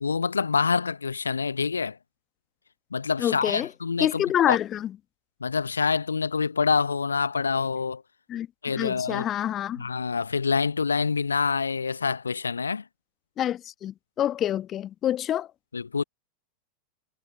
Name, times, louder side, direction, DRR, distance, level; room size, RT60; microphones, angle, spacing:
voice 1, 0.0-2.0 2.9-4.6 5.4-8.0 8.6-9.3 9.8-12.9 15.7-16.0, left 5 dB, 80° left, 0.8 m, -26 dB
voice 2, 3.2-3.7 4.0-4.9 8.3-8.5 8.7-9.8 13.4-15.5, left 11 dB, 30° left, 1.1 m, -27 dB
figure-of-eight pair, 85°, 0 cm